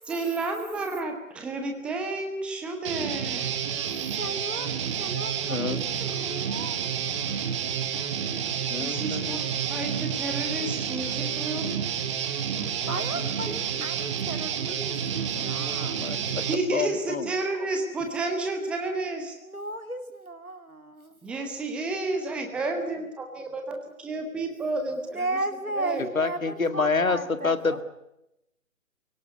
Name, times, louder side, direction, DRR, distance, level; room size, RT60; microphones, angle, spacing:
voice 1, 0.1-3.6 8.8-11.8 16.4-19.3 21.2-25.3 25.7-26.0, right 2 dB, 5° right, 1.0 m, -31 dB
Guitar, 2.8-16.5, right 8 dB, 20° right, 1.6 m, -30 dB
voice 2, 4.2-6.9 12.8-16.0 19.4-21.2 25.1-27.8, right 2 dB, 90° right, 2.8 m, -35 dB
voice 3, 5.5-5.8 8.7-9.4 10.6-10.7 12.5-13.3 15.3-16.4 16.7-17.3 26.2-27.8, left 4 dB, 70° left, 2.0 m, -29 dB
23.5 x 17.5 x 9.4 m
figure-of-eight pair, 145°, 42 cm